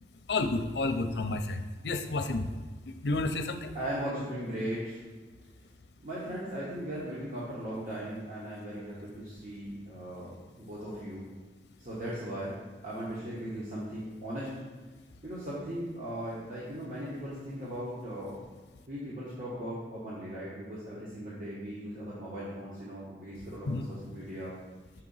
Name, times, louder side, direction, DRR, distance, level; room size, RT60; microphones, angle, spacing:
voice 1, 0.3-2.5 3.0-3.7 23.7-23.8, left 2 dB, 65° left, 8 dB, 0.5 m, -30 dB
voice 2, 3.7-5.0 6.0-11.3 11.8-12.6 12.8-14.5 15.2-18.4 18.9-24.6, right 1 dB, 45° right, -8 dB, 1.3 m, -38 dB
6.5 x 3.8 x 5.5 m, 1.4 s
head